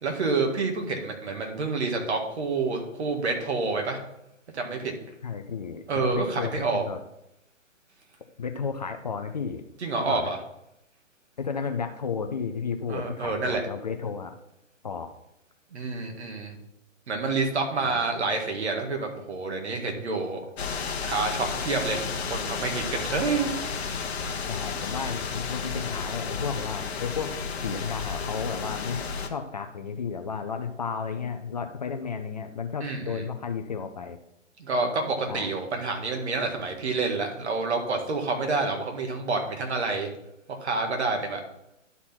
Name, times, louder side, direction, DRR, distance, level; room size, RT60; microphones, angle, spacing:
voice 1, 0.0-4.0 4.5-4.9 5.9-6.8 9.8-10.4 12.9-13.6 15.7-16.5 17.1-20.4 21.0-22.0 22.3-23.6 32.8-33.2 34.6-40.1 40.6-41.4, right 3 dB, 55° right, 3 dB, 1.9 m, -28 dB
voice 2, 5.2-7.0 8.4-9.6 10.0-10.3 11.4-14.4 14.8-15.1 17.8-18.0 23.2-23.3 24.5-27.3 27.6-29.0 29.3-34.2 35.3-35.5, left 6 dB, 35° left, 6 dB, 0.5 m, -33 dB
sound 1, 20.6-29.3, left 5 dB, 55° left, 1.1 m, -32 dB
11.0 x 4.2 x 4.4 m, 0.80 s
figure-of-eight pair, 135°, 39 cm